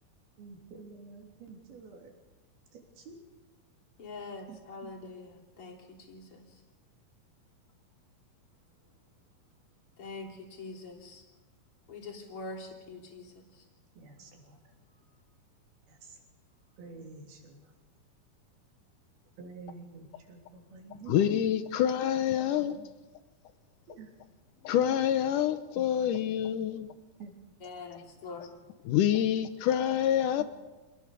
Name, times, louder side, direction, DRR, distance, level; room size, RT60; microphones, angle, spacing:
voice 1, 0.4-2.1 2.7-3.2 4.2-4.9 14.0-14.6 15.9-16.2 16.8-17.7 19.4-21.6 22.6-22.9 24.0-24.1 25.8-25.9 27.2-27.3 30.4-30.5, right 4 dB, 90° right, 5.4 m, -49 dB
voice 2, 4.0-6.4 10.0-11.2 11.9-13.4 27.6-28.6, left 3 dB, 40° left, 3.7 m, -44 dB
voice 3, 21.1-22.8 24.6-27.0 28.9-30.4, left 10 dB, 70° left, 2.2 m, -27 dB
27.0 x 19.5 x 6.9 m
omnidirectional pair, 4.3 m